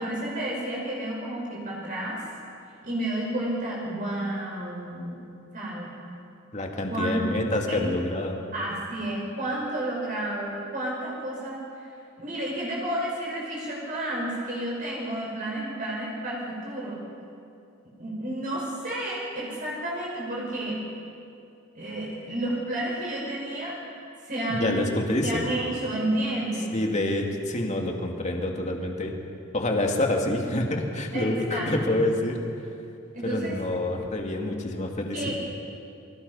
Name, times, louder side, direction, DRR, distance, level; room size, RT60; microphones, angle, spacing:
voice 1, 0.0-2.2 2.8-5.2 5.5-5.9 6.9-7.4 7.7-7.8 8.5-11.9 12.2-17.0 17.8-20.9 21.8-23.8 24.2-24.8 25.2-26.8 31.1-32.0 33.1-33.6 35.1-35.4, right 1 dB, 40° right, -4 dB, 5.6 m, -31 dB
voice 2, 6.5-8.4 24.5-25.4 26.7-29.1 29.5-32.4 33.3-35.4, left 1 dB, 35° left, 1 dB, 2.6 m, -27 dB
28.5 x 24.0 x 5.6 m, 2.6 s
head